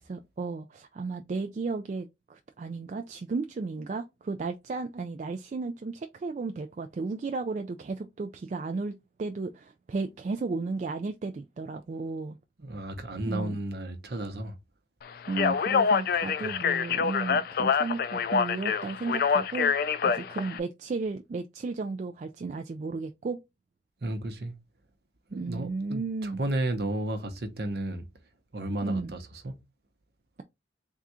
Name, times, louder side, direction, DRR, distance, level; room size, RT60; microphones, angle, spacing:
voice 1, 0.0-8.9 9.2-12.4 13.2-13.6 15.3-23.4 25.3-26.4 28.8-29.1, right 3 dB, 40° right, 0.3 m, -34 dB
voice 2, 12.6-14.5 16.4-16.5 24.0-24.5 25.3-28.0 28.5-29.2 29.4-29.5, right 1 dB, 60° right, 0.8 m, -33 dB
Speech, 15.3-20.6, left 6 dB, 55° left, 0.3 m, -26 dB
3.6 x 2.4 x 4.2 m
head